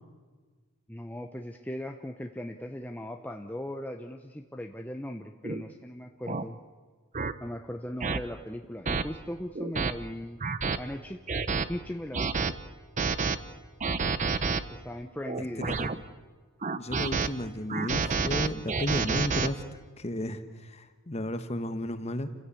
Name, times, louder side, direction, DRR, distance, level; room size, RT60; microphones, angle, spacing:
voice 1, 0.9-6.6 7.4-10.4 10.8-11.2 11.6-12.3 14.7-15.7, left 1 dB, 5° left, 4 dB, 0.8 m, -38 dB
sound 1, 5.4-5.6 6.3-6.4 7.1-7.3 8.0-8.2 8.9-9.0 9.6-9.9 10.4-10.8 11.3-11.6 12.1-12.5 13.0-13.4 13.8-14.6 15.3-16.0 16.6-17.3 17.7-19.5, right 4 dB, 35° right, 0.8 m, -29 dB
voice 2, 15.4-15.9 16.8-22.3, left 1 dB, 30° left, 10 dB, 1.2 m, -33 dB
29.5 x 16.0 x 8.4 m, 1.4 s
head